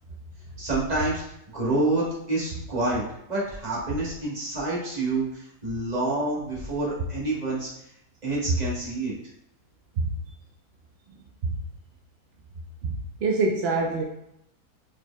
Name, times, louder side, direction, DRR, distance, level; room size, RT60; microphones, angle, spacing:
voice 1, 0.6-1.2 1.5-7.7 8.2-9.1, right 2 dB, 30° right, -5 dB, 1.3 m, -28 dB
voice 2, 13.2-14.0, right 3 dB, 70° right, 0 dB, 0.6 m, -24 dB
5.0 x 4.4 x 2.2 m, 0.80 s
omnidirectional pair, 1.6 m